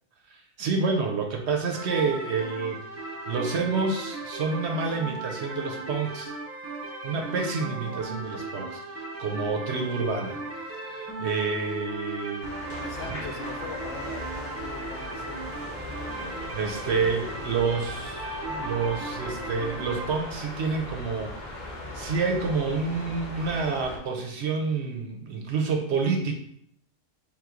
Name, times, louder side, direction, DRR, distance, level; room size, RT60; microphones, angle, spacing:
voice 1, 0.6-6.3 7.0-10.4 10.7-12.7 13.1-13.2 16.5-26.4, right 4 dB, 65° right, 3 dB, 0.8 m, -29 dB
sound 1, 1.7-20.1, right 3 dB, 20° right, 0.4 m, -37 dB
sound 2, 12.4-24.0, left 1 dB, 45° left, 0.7 m, -38 dB
voice 2, 12.8-15.4, left 4 dB, 70° left, 3 dB, 1.0 m, -40 dB
3.6 x 3.0 x 3.7 m, 0.70 s
omnidirectional pair, 1.4 m